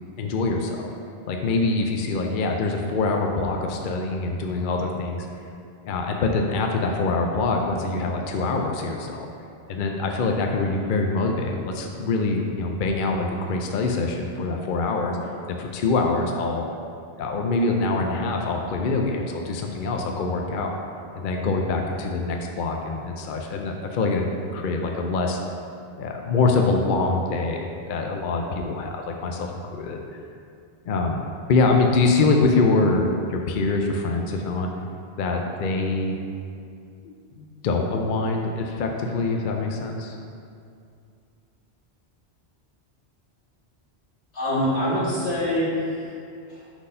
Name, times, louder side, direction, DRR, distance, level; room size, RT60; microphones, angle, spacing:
voice 1, 0.2-0.9 1.3-5.3 5.9-9.3 9.7-16.6 17.2-20.8 21.1-24.3 24.5-25.4 25.9-30.0 30.9-31.2 31.5-34.7 35.2-36.2 37.0-40.2, left 3 dB, 60° left, 2 dB, 0.7 m, -24 dB
voice 2, 44.3-46.1 46.5-46.6, left 1 dB, 85° left, -8 dB, 2.1 m, -25 dB
6.0 x 4.0 x 5.4 m, 2.5 s
omnidirectional pair, 1.1 m